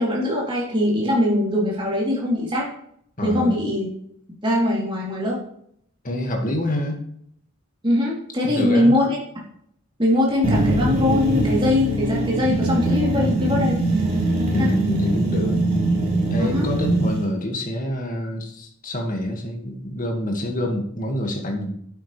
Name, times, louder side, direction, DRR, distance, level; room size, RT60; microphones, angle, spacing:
voice 1, 0.0-2.7 3.2-3.9 4.4-5.4 7.8-9.2 10.0-13.8 14.6-14.7 16.4-16.7, left 1 dB, 20° right, -5 dB, 3.5 m, -21 dB
voice 2, 3.2-3.6 6.0-7.0 8.4-9.0 14.5-15.6 16.3-21.7, left 1 dB, 35° left, 2 dB, 2.1 m, -26 dB
sound 1, 10.4-17.2, right 1 dB, 40° right, 4.0 m, -22 dB
11.5 x 9.4 x 3.4 m, 0.68 s
head